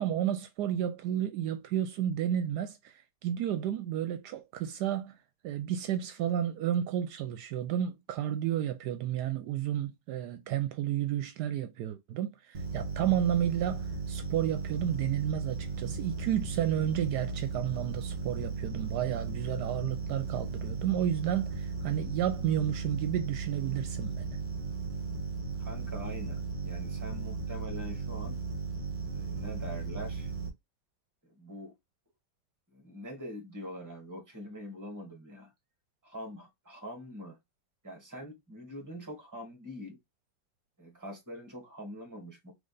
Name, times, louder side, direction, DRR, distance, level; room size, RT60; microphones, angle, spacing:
voice 1, 0.0-5.2 5.4-24.4, right 10 dB, 75° right, 1.1 m, -31 dB
sound 1, 12.5-30.5, right 4 dB, 40° right, 1.7 m, -36 dB
voice 2, 25.6-28.4 29.1-30.3 31.2-31.7 32.7-35.5 36.0-37.4 37.8-40.0 40.8-42.5, equal, 10° right, 1.6 m, -44 dB
3.8 x 3.4 x 3.8 m
omnidirectional pair, 1.8 m